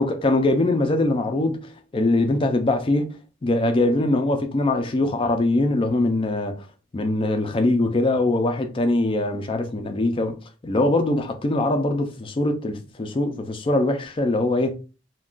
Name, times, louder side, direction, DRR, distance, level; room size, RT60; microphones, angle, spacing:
voice 1, 0.0-3.1 3.4-6.6 6.9-10.4 10.6-14.7, left 2 dB, 25° left, 0.4 m, -22 dB
2.4 x 2.2 x 3.6 m
head